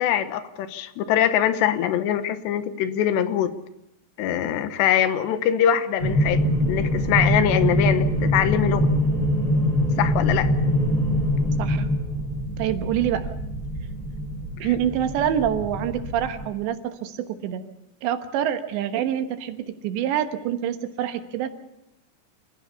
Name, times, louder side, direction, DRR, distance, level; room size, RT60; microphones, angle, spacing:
voice 1, 0.0-3.5 4.2-8.9 10.0-10.5 14.6-14.7, left 10 dB, 80° left, 11 dB, 3.2 m, -23 dB
sound 1, 6.0-16.5, equal, 10° left, 4.6 m, -24 dB
voice 2, 12.6-13.3 14.6-17.6 18.0-21.5, right 10 dB, 90° right, 8 dB, 3.5 m, -26 dB
27.5 x 15.5 x 6.9 m, 0.84 s
omnidirectional pair, 4.9 m